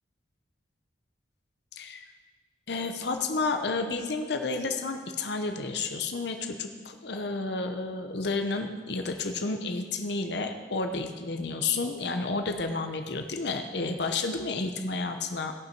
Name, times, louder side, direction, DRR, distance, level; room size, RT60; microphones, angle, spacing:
voice 1, 1.7-2.0 2.7-15.5, left 3 dB, 60° left, 6 dB, 0.7 m, -31 dB
17.5 x 5.9 x 4.5 m, 1.5 s
head